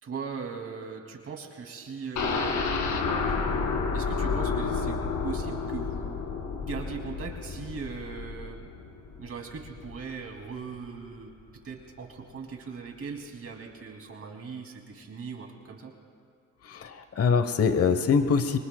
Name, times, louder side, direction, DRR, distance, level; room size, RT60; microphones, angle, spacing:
voice 1, 0.0-2.7 3.3-3.5 3.9-6.2 6.6-8.7 9.2-11.4 11.6-15.9, right 5 dB, 50° right, 2 dB, 2.6 m, -39 dB
sound 1, 2.2-10.0 10.4-10.5 10.8-10.9, left 4 dB, 75° left, 2.3 m, -30 dB
voice 2, 16.6-18.6, left 5 dB, 50° left, 9 dB, 1.1 m, -24 dB
26.5 x 23.5 x 2.3 m, 2.1 s
cardioid pair, 90°, 30 cm